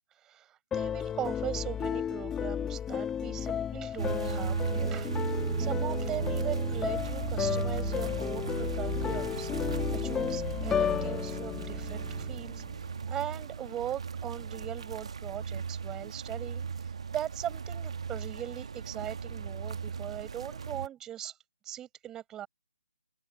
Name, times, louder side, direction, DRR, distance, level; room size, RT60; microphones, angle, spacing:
voice 1, 0.2-12.6 13.1-16.6 17.1-21.4 21.6-22.5, right 11 dB, 15° right, 7.3 m, -40 dB
sound 1, 0.7-12.8, left 8 dB, 10° left, 1.8 m, -33 dB
sound 2, 4.0-20.9, right 6 dB, 60° right, 1.8 m, -36 dB
open air
figure-of-eight pair, 145°, 4 cm